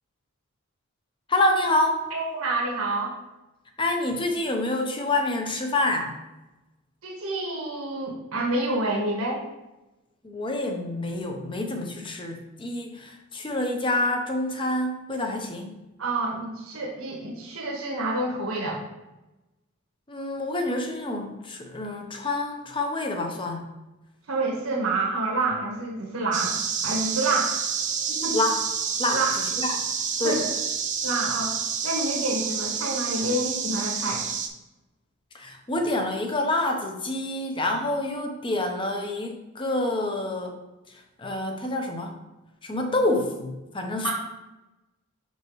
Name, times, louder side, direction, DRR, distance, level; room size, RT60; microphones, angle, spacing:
voice 1, 1.3-2.0 3.8-6.1 10.2-15.7 20.1-23.7 28.3-28.6 29.0-29.9 30.2-30.4 35.3-40.6 41.2-42.1 42.6-44.1, left 2 dB, 25° left, 3 dB, 0.7 m, -27 dB
voice 2, 2.1-3.1 7.0-9.4 16.0-18.8 24.3-26.5 26.8-27.6 28.1-28.4 29.1-29.4 30.2-30.5 31.0-31.6 31.8-34.2 44.0-44.1, right 2 dB, 75° right, -2 dB, 1.4 m, -28 dB
sound 1, 26.3-34.5, right 6 dB, 35° right, 0.6 m, -29 dB
5.9 x 5.5 x 3.1 m, 1.0 s
head